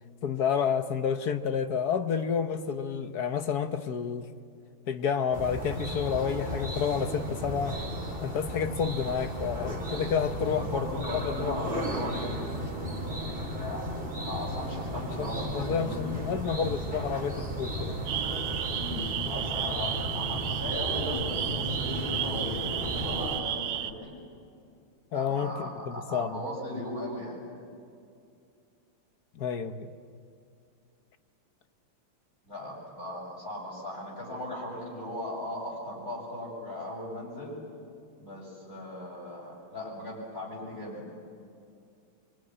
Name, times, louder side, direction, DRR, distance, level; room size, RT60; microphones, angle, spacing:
voice 1, 0.2-4.3 4.9-7.8 8.2-11.8 14.9-18.0 25.1-26.4 29.3-29.9, left 7 dB, 55° left, 1.3 m, -30 dB
sound 1, 5.3-23.4, equal, 25° right, 3.2 m, -34 dB
voice 2, 10.4-13.2 13.5-13.9 14.2-16.2 18.7-24.1 25.1-27.4 32.5-37.6 38.2-41.0, left 1 dB, 40° left, 7.3 m, -38 dB
sound 2, 18.1-23.9, right 10 dB, 90° right, 1.8 m, -33 dB
24.5 x 24.5 x 9.9 m
omnidirectional pair, 2.2 m